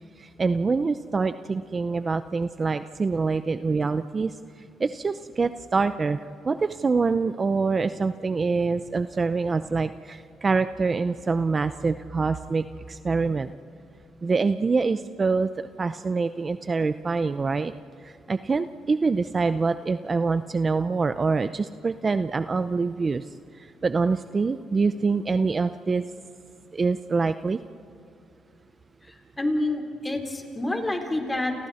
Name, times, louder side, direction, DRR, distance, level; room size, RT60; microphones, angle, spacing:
voice 1, 0.4-4.3 4.8-6.2 6.5-13.5 14.2-15.5 15.8-17.7 18.3-23.2 23.8-26.0 26.7-27.6, right 4 dB, 35° right, 11 dB, 0.6 m, -25 dB
voice 2, 29.0-31.5, left 2 dB, 15° left, 3 dB, 4.1 m, -28 dB
30.0 x 29.5 x 4.3 m, 2.6 s
cardioid pair, 90°, 0 cm